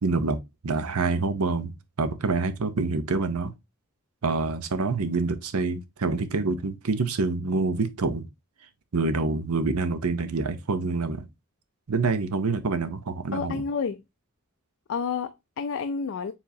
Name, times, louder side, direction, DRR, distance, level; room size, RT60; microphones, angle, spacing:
voice 1, 0.0-3.5 4.2-8.3 8.9-11.3 11.9-13.6, right 3 dB, 75° right, 0.7 m, -26 dB
voice 2, 13.3-14.0 14.9-16.3, left 5 dB, 60° left, 0.4 m, -30 dB
4.7 x 3.6 x 2.6 m
head